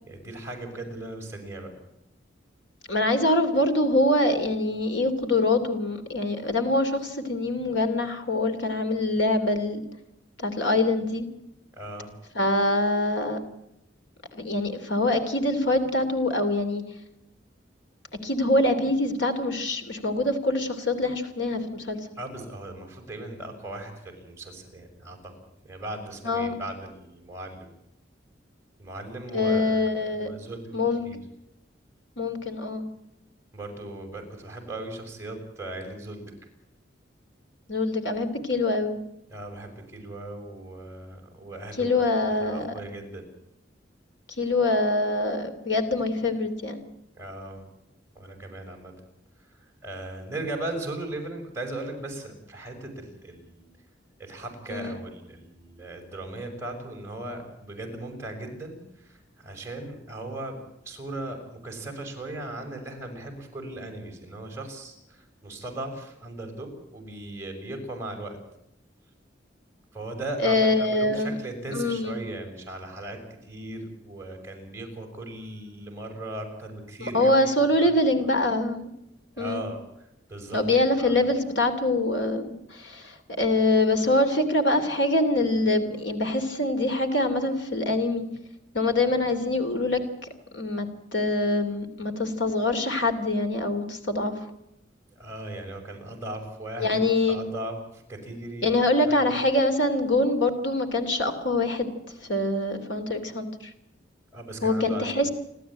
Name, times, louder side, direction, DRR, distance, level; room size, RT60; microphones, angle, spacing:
voice 1, 0.0-1.8 11.7-12.1 22.2-25.3 25.6-27.7 28.8-31.2 33.5-36.3 39.3-43.3 47.1-47.6 48.1-48.9 49.4-53.9 54.2-68.4 69.9-78.1 79.3-81.1 95.1-98.8 99.1-99.5 104.3-105.3, right 1 dB, 15° right, 2 dB, 6.1 m, -38 dB
voice 2, 2.9-9.8 10.4-11.2 12.3-13.4 14.3-16.8 18.2-22.0 26.2-26.6 29.3-30.3 30.7-31.1 32.2-32.8 37.7-39.0 41.8-42.7 44.4-46.8 54.7-55.0 70.4-71.3 71.7-72.2 77.1-78.9 79.4-79.6 80.5-88.2 88.7-90.0 90.5-94.5 96.8-97.4 98.6-101.9 102.2-103.7 104.6-105.3, left 2 dB, 80° left, 6 dB, 2.9 m, -24 dB
29.5 x 12.5 x 8.9 m, 0.85 s
head